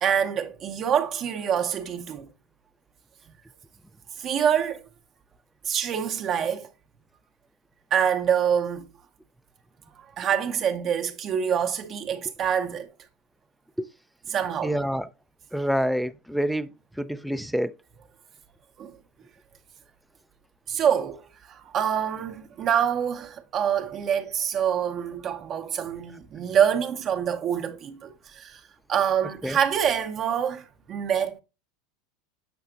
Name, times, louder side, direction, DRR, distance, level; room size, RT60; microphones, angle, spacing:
voice 1, 0.0-2.3 4.2-4.8 5.6-6.7 7.9-8.9 10.2-12.9 14.3-14.7 18.8-18.9 20.7-21.2 21.5-28.6 28.9-31.4, right 8 dB, 40° right, 0.9 m, -26 dB
voice 2, 14.6-15.1 15.5-16.7 17.0-17.7 29.4-29.6, equal, ahead, 0.5 m, -27 dB
6.9 x 5.8 x 2.5 m
hypercardioid pair, 90°, 0 cm